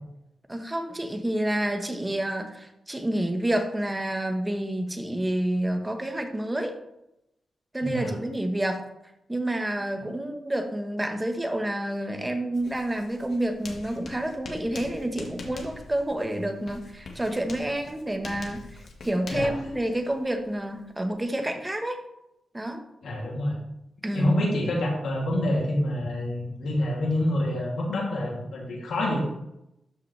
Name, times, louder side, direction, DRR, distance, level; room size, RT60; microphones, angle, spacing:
voice 1, 0.5-6.8 7.7-8.8 9.3-22.0 22.5-22.8 24.0-24.3, right 1 dB, 15° right, 5 dB, 1.3 m, -29 dB
voice 2, 7.8-8.1 19.3-19.5 23.0-23.5 24.1-29.2, left 1 dB, 85° left, -3 dB, 2.8 m, -27 dB
Writing, 12.5-21.2, left 3 dB, 70° left, 1.7 m, -44 dB
13.0 x 5.7 x 3.4 m, 0.85 s
cardioid pair, 85°, 0 cm